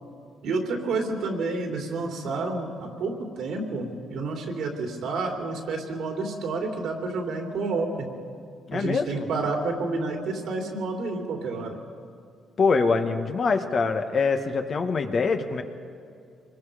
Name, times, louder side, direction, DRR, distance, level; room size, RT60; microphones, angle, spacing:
voice 1, 0.4-8.1 8.7-11.8, right 3 dB, 75° right, 2 dB, 3.2 m, -29 dB
voice 2, 8.7-9.3 12.6-15.6, left 4 dB, 45° left, 6 dB, 1.6 m, -24 dB
25.0 x 21.0 x 5.2 m, 2.4 s
cardioid pair, 90°, 0 cm